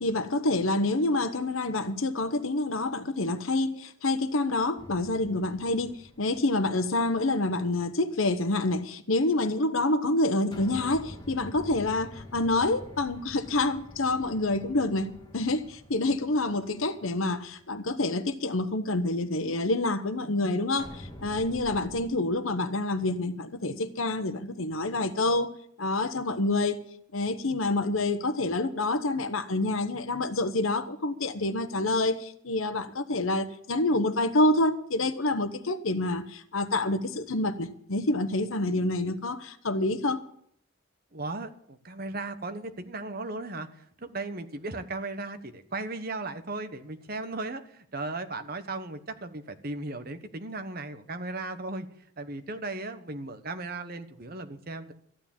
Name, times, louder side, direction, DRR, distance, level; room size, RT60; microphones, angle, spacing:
voice 1, 0.0-25.5 25.8-26.8 27.1-40.2, left 2 dB, 80° left, 1.0 m, -27 dB
sound 1, 4.8-7.3 10.5-17.7 20.8-22.0, left 1 dB, 20° left, 1.9 m, -47 dB
voice 2, 41.1-43.7 44.0-51.9 52.2-54.9, right 2 dB, 45° right, 1.1 m, -36 dB
14.5 x 9.7 x 7.2 m
head